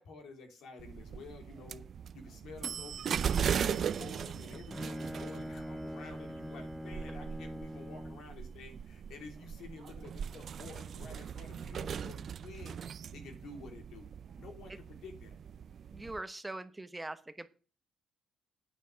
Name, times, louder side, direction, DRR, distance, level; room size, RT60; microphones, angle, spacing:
voice 1, 0.0-1.8 2.1-12.8 13.1-14.1 14.4-15.4, left 4 dB, 80° left, 4 dB, 3.2 m, -50 dB
sound 1, 0.8-16.2, right 8 dB, 55° right, 0.4 m, -39 dB
Bowed string instrument, 4.2-8.4, equal, ahead, 0.5 m, -43 dB
voice 2, 15.9-17.5, right 2 dB, 15° right, 11 dB, 1.0 m, -42 dB
9.2 x 6.8 x 6.4 m, 0.36 s
cardioid pair, 95°, 0 cm